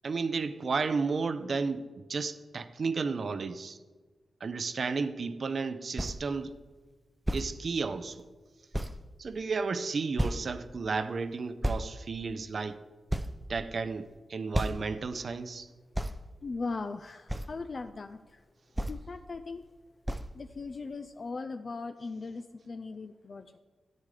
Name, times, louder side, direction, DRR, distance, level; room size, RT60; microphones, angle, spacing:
voice 1, 0.0-3.8 4.4-6.5 7.3-8.2 9.2-12.8 13.5-15.7, right 4 dB, 55° right, 0.6 m, -33 dB
sound 1, 6.0-6.2 7.3-7.5 8.2-8.3 8.7-9.0 10.2-10.5 11.6-11.9 12.6-12.7 13.1-13.9 14.5-14.9 15.9-16.2 17.3-17.5 18.8-19.0 20.1-20.3, right 1 dB, 10° right, 0.4 m, -31 dB
voice 2, 16.4-18.4 18.9-19.6 20.3-23.5, left 3 dB, 50° left, 0.4 m, -39 dB
13.5 x 8.8 x 3.3 m
wide cardioid pair, 95°, 0 cm